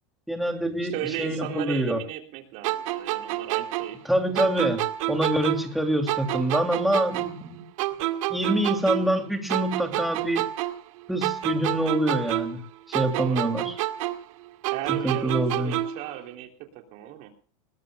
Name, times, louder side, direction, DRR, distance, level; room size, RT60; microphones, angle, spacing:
voice 1, 0.3-0.9 1.2-2.0 4.0-7.6 8.3-10.5 11.1-12.6 12.9-13.7 15.0-15.8, right 1 dB, ahead, 3 dB, 2.9 m, -26 dB
voice 2, 0.8-4.0 13.1-13.5 14.7-17.3, right 12 dB, 45° right, 3 dB, 3.5 m, -36 dB
sound 1, 2.6-5.8 6.1-9.2 9.5-12.7 12.9-16.1, right 15 dB, 70° right, 2.2 m, -29 dB
21.5 x 19.0 x 2.4 m, 0.40 s
supercardioid pair, 165°, 17 cm